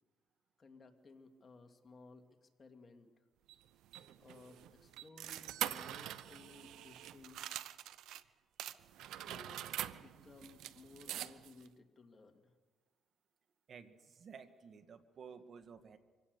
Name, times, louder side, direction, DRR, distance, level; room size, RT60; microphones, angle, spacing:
voice 1, 0.6-3.1 4.2-7.5 9.1-12.5, left 3 dB, 35° left, 4 dB, 2.4 m, -58 dB
sound 1, 3.5-8.2 8.6-11.7, right 12 dB, 85° right, 0.7 m, -44 dB
voice 2, 13.7-16.0, right 6 dB, 55° right, 9 dB, 1.7 m, -54 dB
24.5 x 17.0 x 6.8 m, 1.4 s
cardioid pair, 90°, 0 cm